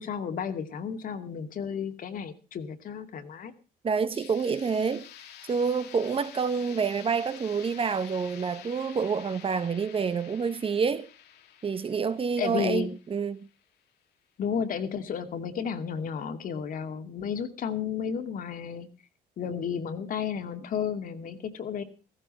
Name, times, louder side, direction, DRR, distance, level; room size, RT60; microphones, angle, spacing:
voice 1, 0.0-3.5 12.4-12.9 14.4-18.9 19.4-21.8, left 7 dB, 55° left, 2.4 m, -32 dB
voice 2, 3.8-5.1 5.5-11.1 11.6-13.4, right 5 dB, 35° right, 1.2 m, -28 dB
sound 1, 4.1-13.9, left 10 dB, 75° left, 2.4 m, -49 dB
15.5 x 15.0 x 4.2 m
cardioid pair, 110°, 17 cm